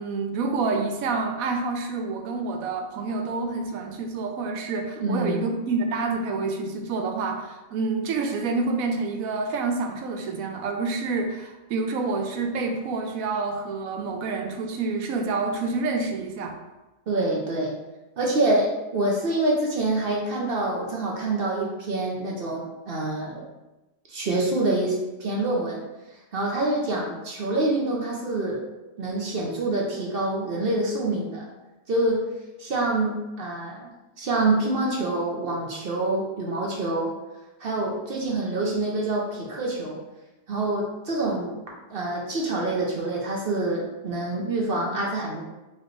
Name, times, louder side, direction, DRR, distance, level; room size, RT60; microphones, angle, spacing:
voice 1, 0.0-16.5, right 3 dB, 85° right, 4 dB, 1.0 m, -28 dB
voice 2, 5.0-5.5 17.1-17.7 18.2-23.5 24.1-25.8 26.3-28.6 29.0-31.5 31.9-32.2 32.6-33.9 34.2-37.1 37.6-40.0 40.5-41.6 41.9-45.4, right 2 dB, 50° right, -2 dB, 0.9 m, -26 dB
4.8 x 3.1 x 3.2 m, 1.0 s
omnidirectional pair, 1.4 m